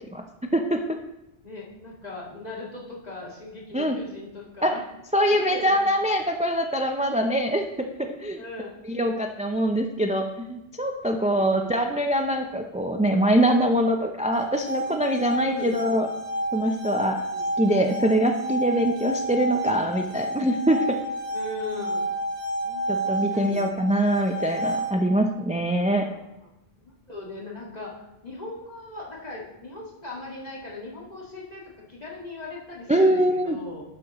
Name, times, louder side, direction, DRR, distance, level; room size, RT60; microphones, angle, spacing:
voice 1, 0.5-1.0 3.7-4.0 4.6-4.7 5.1-8.4 8.8-16.1 16.5-17.2 17.6-21.0 22.9-26.1 32.9-33.6, right 1 dB, 10° right, 4 dB, 0.4 m, -23 dB
voice 2, 1.4-4.8 5.3-5.9 8.4-8.8 11.3-11.9 15.4-15.8 17.3-17.4 21.3-22.0 22.6-23.7 25.9-26.2 26.4-26.5 27.1-33.8, left 2 dB, 40° left, -3 dB, 2.1 m, -39 dB
sound 1, 14.3-25.3, right 1 dB, 80° right, 1.6 m, -30 dB
11.0 x 7.6 x 3.0 m, 0.92 s
omnidirectional pair, 1.1 m